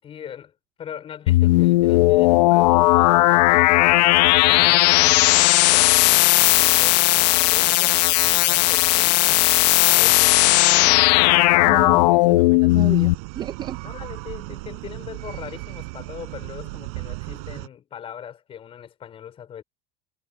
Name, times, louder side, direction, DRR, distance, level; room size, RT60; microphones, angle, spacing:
voice 1, 0.0-9.5 9.9-10.3 13.8-19.6, left 9 dB, 25° left, 4.1 m, -40 dB
sound 1, 1.3-13.1, left 19 dB, 80° left, 0.7 m, -16 dB
voice 2, 11.7-13.8, right 9 dB, 20° right, 0.4 m, -33 dB
sound 2, 12.7-17.7, right 30 dB, 65° right, 5.7 m, -36 dB
supercardioid pair, 150°, 21 cm